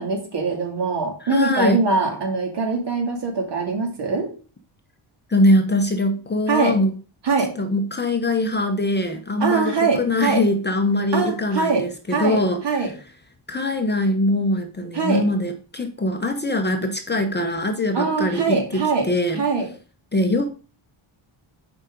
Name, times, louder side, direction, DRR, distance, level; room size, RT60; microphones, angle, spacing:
voice 1, 0.0-4.3 6.5-6.8 7.2-7.5 9.4-10.4 11.1-11.8 12.1-12.9 14.9-15.2 17.9-19.1 19.3-19.7, right 4 dB, 55° right, 2 dB, 2.6 m, -22 dB
voice 2, 1.3-1.8 5.3-6.9 7.6-12.6 13.5-19.4 20.1-20.5, left 1 dB, 20° left, 6 dB, 0.9 m, -22 dB
7.2 x 5.1 x 5.1 m, 0.37 s
wide cardioid pair, 125°, 49 cm